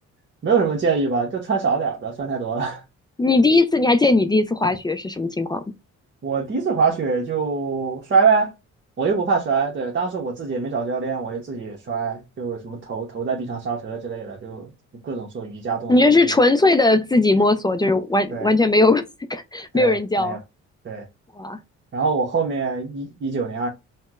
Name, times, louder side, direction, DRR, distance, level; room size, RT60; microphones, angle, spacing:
voice 1, 0.4-2.8 6.2-8.5 9.0-14.7 15.0-16.1 18.3-18.5 19.7-20.4 20.8-21.0 21.9-23.7, right 5 dB, 40° right, 0.8 m, -24 dB
voice 2, 3.2-5.6 15.9-19.0 19.3-20.4 21.4-21.6, left 2 dB, 15° left, 0.3 m, -18 dB
4.2 x 2.1 x 2.3 m
cardioid pair, 90°, 30 cm